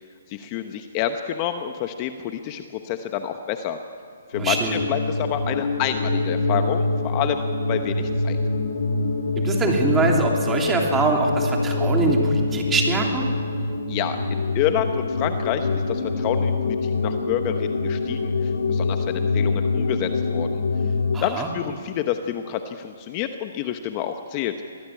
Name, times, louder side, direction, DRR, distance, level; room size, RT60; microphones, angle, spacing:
voice 1, 0.3-3.8 4.3-8.4 13.9-20.6 21.2-24.5, left 10 dB, 30° left, 7 dB, 1.1 m, -28 dB
sound 1, 4.3-21.2, left 3 dB, 85° left, 3.0 m, -25 dB
voice 2, 4.4-4.8 9.3-13.3 21.1-21.5, right 3 dB, 10° right, 1 dB, 3.2 m, -23 dB
24.0 x 19.5 x 8.6 m, 2.2 s
hypercardioid pair, 155°, 0 cm